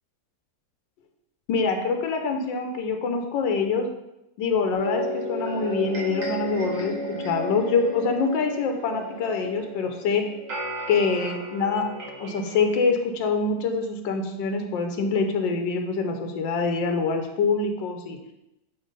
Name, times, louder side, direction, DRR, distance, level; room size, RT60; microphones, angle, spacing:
voice 1, 1.5-3.9 4.4-10.2 10.9-18.2, left 4 dB, 85° left, 5 dB, 1.4 m, -25 dB
sound 1, 4.7-12.9, equal, 70° right, 2.7 m, -33 dB
8.0 x 3.3 x 5.3 m, 0.90 s
omnidirectional pair, 2.0 m